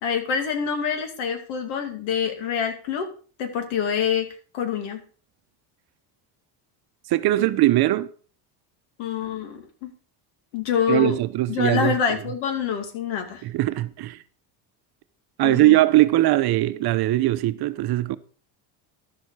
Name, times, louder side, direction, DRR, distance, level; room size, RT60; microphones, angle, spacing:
voice 1, 0.0-3.1 3.4-4.3 4.5-5.0 9.0-9.9 10.5-11.2 11.5-13.4 15.4-15.8, left 7 dB, 75° left, 2.4 m, -26 dB
voice 2, 7.1-8.1 10.9-12.2 13.4-14.2 15.4-18.2, right 16 dB, 55° right, 0.8 m, -20 dB
12.0 x 7.0 x 4.8 m
cardioid pair, 125°, 47 cm